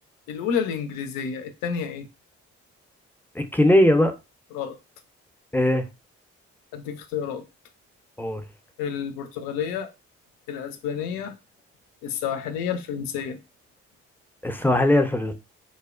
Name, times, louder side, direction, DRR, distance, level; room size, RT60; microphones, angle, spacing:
voice 1, 0.3-2.1 4.5-4.8 6.7-7.4 8.8-9.9 10.5-11.3 12.0-13.4, left 7 dB, 80° left, 0.5 m, -30 dB
voice 2, 3.3-4.1 5.5-5.9 8.2-8.4 14.4-15.3, left 1 dB, 5° left, 0.5 m, -19 dB
2.7 x 2.0 x 2.4 m
hypercardioid pair, 40°, 33 cm